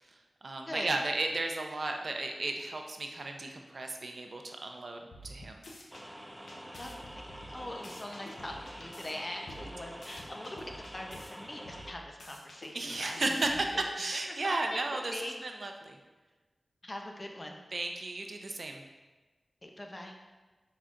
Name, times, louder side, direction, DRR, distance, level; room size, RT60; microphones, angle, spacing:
voice 1, 0.1-5.6 9.6-9.7 12.7-16.0 17.7-18.8, right 2 dB, 65° right, 3 dB, 0.5 m, -34 dB
sound 1, 5.1-6.0 6.5-9.1 9.5-11.3 11.6-13.8, equal, 80° left, 0.7 m, -49 dB
sound 2, 5.9-11.9, equal, 5° right, 0.4 m, -47 dB
voice 2, 6.8-13.3 13.7-13.8 14.4-15.3 16.8-17.6 19.6-20.1, left 1 dB, 35° left, 2 dB, 0.7 m, -42 dB
5.7 x 3.7 x 2.5 m, 1.3 s
cardioid pair, 45°, 0 cm